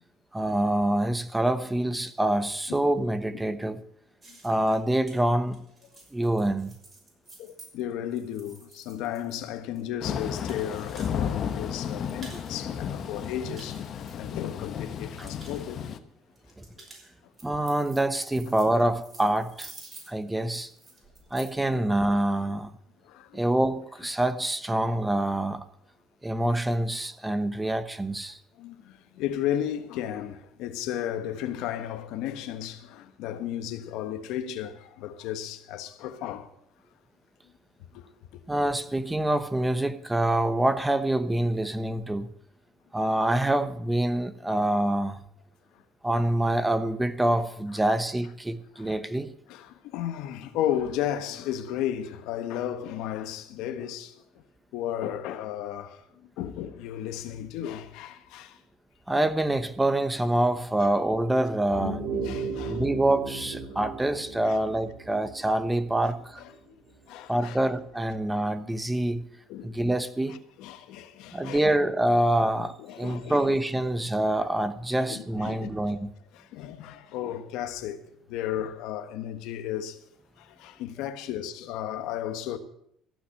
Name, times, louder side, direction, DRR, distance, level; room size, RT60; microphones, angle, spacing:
voice 1, 0.3-3.8 4.4-5.6 6.1-6.7 15.2-15.3 17.4-19.7 20.1-20.7 21.3-22.7 23.3-25.6 26.2-28.4 38.5-42.3 42.9-45.2 46.0-49.3 59.1-62.0 62.7-66.4 67.3-69.3 69.6-70.4 71.3-76.1, right 1 dB, 10° right, 0.9 m, -26 dB
sound 1, 4.2-11.3 11.6-12.6 13.0-14.7 15.0-15.6 16.4-21.7, right 3 dB, 30° right, 6.1 m, -50 dB
voice 2, 7.4-15.9 16.8-16.9 21.7-21.8 23.0-23.4 28.6-36.5 37.9-38.1 48.8-49.0 49.5-54.1 54.7-58.6 62.2-62.8 64.4-64.6 66.7-66.8 67.1-67.6 69.5-69.7 70.3-71.7 72.8-73.5 74.9-76.0 76.3-78.0 78.3-80.0 80.4-82.6, left 10 dB, 75° left, 1.3 m, -34 dB
Thunder / Rain, 10.0-16.0, left 8 dB, 50° left, 1.1 m, -33 dB
sound 2, 61.6-66.4, right 4 dB, 85° right, 2.1 m, -35 dB
15.0 x 6.0 x 9.8 m
supercardioid pair, 95°, 0 cm